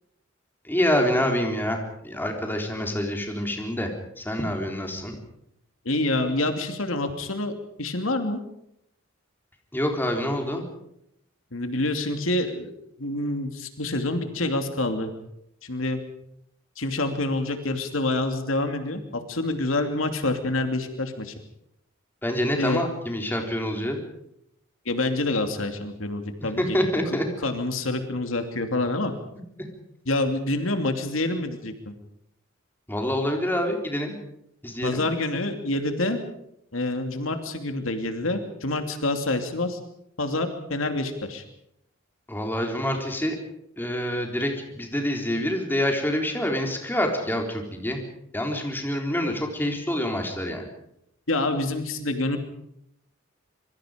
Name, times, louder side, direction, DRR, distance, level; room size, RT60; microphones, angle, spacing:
voice 1, 0.6-3.9 4.2-5.2 9.7-10.6 22.2-24.0 26.6-27.3 32.9-34.2 34.6-35.0 42.3-43.4 43.8-48.0 48.3-50.6, equal, 10° left, 2 dB, 3.9 m, -26 dB
voice 2, 5.8-7.5 7.8-8.4 11.5-12.7 13.0-15.1 15.6-16.0 16.8-21.3 22.5-22.8 24.8-26.8 27.4-29.1 30.1-31.9 34.8-36.2 36.7-39.8 40.2-41.4 51.3-52.4, left 2 dB, 75° left, 6 dB, 2.7 m, -27 dB
26.0 x 23.5 x 5.2 m, 0.76 s
head